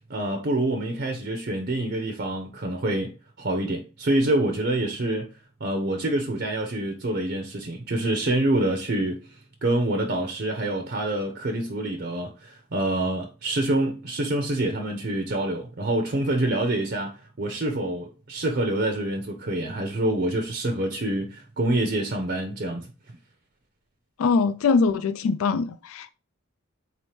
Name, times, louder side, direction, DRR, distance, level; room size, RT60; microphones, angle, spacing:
voice 1, 0.1-3.1 3.4-5.3 5.6-9.2 9.6-22.9, right 1 dB, 50° right, 0.5 m, -26 dB
voice 2, 24.2-26.1, left 4 dB, 80° left, 0.3 m, -22 dB
4.2 x 2.9 x 3.1 m
head